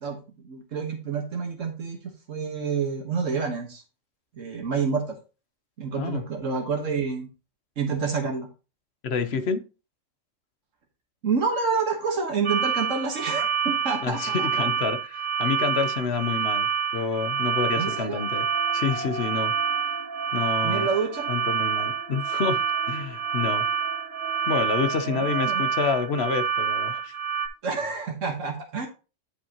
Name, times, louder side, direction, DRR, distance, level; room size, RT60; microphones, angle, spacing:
voice 1, 0.0-3.8 4.3-5.2 5.8-7.3 7.8-8.5 11.2-14.7 17.8-18.2 20.6-21.3 25.1-25.6 27.6-28.9, right 5 dB, 80° right, 1.7 m, -28 dB
voice 2, 9.0-9.6 14.0-18.4 18.7-19.5 20.3-20.9 21.3-23.7 24.5-27.1, left 5 dB, 60° left, 1.0 m, -28 dB
sound 1, 12.4-27.5, right 7 dB, 60° right, 1.1 m, -27 dB
sound 2, 17.3-26.4, right 3 dB, 40° right, 0.3 m, -40 dB
10.0 x 5.4 x 2.9 m
omnidirectional pair, 1.3 m